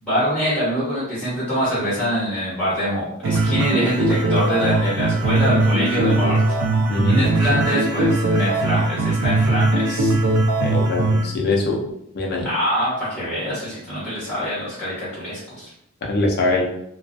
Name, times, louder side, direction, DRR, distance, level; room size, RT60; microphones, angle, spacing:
voice 1, 0.0-6.6 7.1-10.1 12.4-15.7, equal, 5° left, -10 dB, 1.2 m, -24 dB
sound 1, 3.2-11.2, right 2 dB, 85° right, 0.5 m, -20 dB
voice 2, 6.9-7.3 10.6-11.8 12.1-12.5 16.0-16.7, left 2 dB, 45° left, 0 dB, 0.5 m, -22 dB
2.3 x 2.3 x 2.5 m, 0.77 s
head